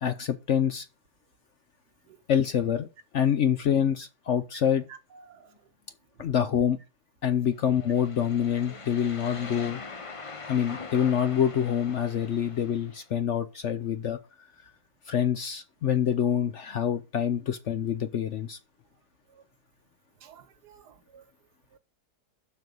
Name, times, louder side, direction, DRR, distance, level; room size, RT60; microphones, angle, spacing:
voice 1, 0.0-0.9 2.3-2.9 3.1-4.8 6.2-6.8 7.2-9.8 10.5-14.2 15.1-18.6, left 9 dB, 60° left, 0.8 m, -26 dB
voice 2, 4.9-5.5 19.3-19.4 20.2-21.2, right 7 dB, 75° right, 1.5 m, -52 dB
sound 1, 7.6-13.0, left 4 dB, 35° left, 0.5 m, -42 dB
7.1 x 6.1 x 5.3 m
omnidirectional pair, 1.8 m